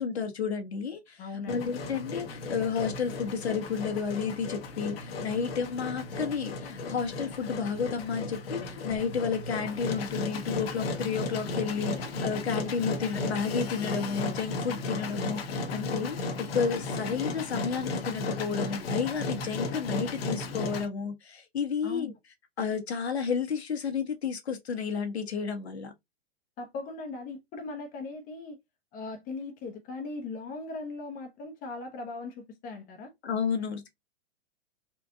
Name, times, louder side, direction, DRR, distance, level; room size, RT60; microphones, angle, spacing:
voice 1, 0.0-22.1 22.6-25.9 33.2-33.9, left 6 dB, 85° left, 1.6 m, -31 dB
voice 2, 1.2-1.7 21.8-22.1 26.6-28.6 28.9-33.1, left 3 dB, 25° left, 0.8 m, -39 dB
Engine, 1.5-20.9, left 3 dB, 65° left, 1.2 m, -35 dB
4.4 x 2.4 x 2.7 m
hypercardioid pair, 125°, 32 cm